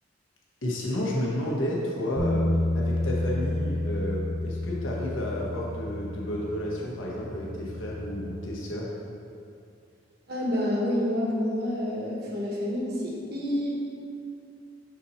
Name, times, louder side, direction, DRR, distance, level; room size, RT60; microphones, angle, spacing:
voice 1, 0.6-2.5 2.7-8.9, equal, 80° left, -4 dB, 1.2 m, -31 dB
sound 1, 2.2-8.4, left 1 dB, 35° left, 0.5 m, -30 dB
voice 2, 10.3-13.8, left 1 dB, 50° right, -3 dB, 1.2 m, -28 dB
6.2 x 4.2 x 4.3 m, 2.5 s
head